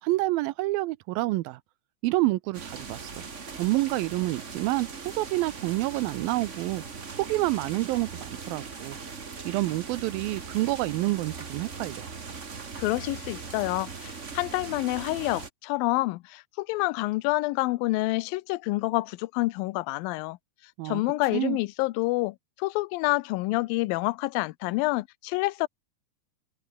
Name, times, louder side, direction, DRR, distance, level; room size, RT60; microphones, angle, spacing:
voice 1, 0.0-1.6 2.0-3.3 3.5-6.8 7.2-9.0 9.5-12.1 20.8-21.0 21.3-21.6, right 19 dB, 80° right, 2.3 m, -28 dB
sound 1, 2.5-15.5, right 5 dB, 45° right, 0.9 m, -40 dB
voice 2, 12.8-20.4 20.9-25.7, left 21 dB, 80° left, 2.3 m, -28 dB
omnidirectional pair, 4.5 m